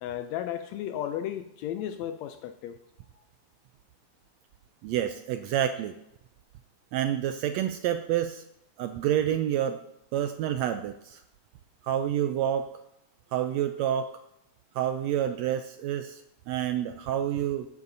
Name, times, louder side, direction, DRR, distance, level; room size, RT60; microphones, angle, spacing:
voice 1, 0.0-2.8, left 10 dB, 80° left, 9 dB, 1.6 m, -34 dB
voice 2, 4.8-6.0 6.9-8.4 8.8-9.8 10.1-11.2 11.8-12.7 13.3-14.1 14.7-17.7, right 10 dB, 80° right, 9 dB, 1.6 m, -28 dB
15.5 x 9.5 x 2.7 m, 0.82 s
omnidirectional pair, 3.5 m